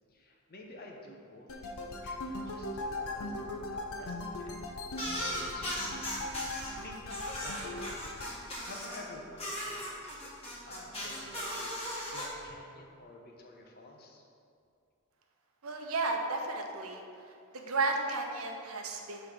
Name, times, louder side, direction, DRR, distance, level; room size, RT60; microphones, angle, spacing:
voice 1, 0.1-6.1 6.7-10.3 10.6-14.2, left 2 dB, 45° left, 1 dB, 0.8 m, -51 dB
sound 1, 1.5-8.4, left 2 dB, 85° left, 0.6 m, -39 dB
sound 2, 4.9-6.7 7.1-9.0 9.4-12.2, equal, 30° left, 1.4 m, -38 dB
voice 2, 15.6-17.0 17.5-19.3, right 3 dB, 80° right, 3 dB, 0.8 m, -33 dB
6.8 x 3.3 x 5.8 m, 2.4 s
head